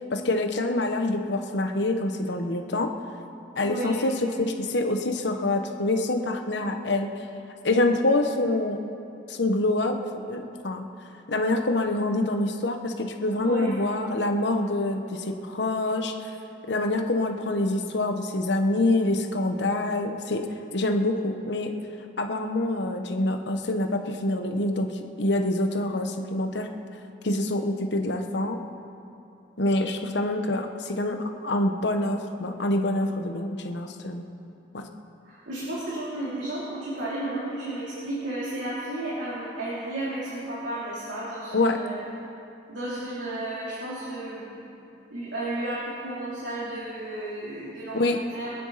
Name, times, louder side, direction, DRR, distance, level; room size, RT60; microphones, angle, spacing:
voice 1, 0.1-2.9 3.6-7.1 7.6-8.8 9.3-10.9 11.3-16.3 16.7-20.5 20.7-21.7 22.2-24.9 25.2-26.7 27.2-28.6 29.6-34.2 34.7-34.9 41.5-41.8 47.9-48.2, left 2 dB, 70° left, 5 dB, 1.1 m, -26 dB
voice 2, 3.6-4.0 13.4-13.7 35.2-42.1 42.7-44.6 45.1-48.5, right 1 dB, 80° right, -9 dB, 3.4 m, -33 dB
25.5 x 9.5 x 4.1 m, 2.8 s
head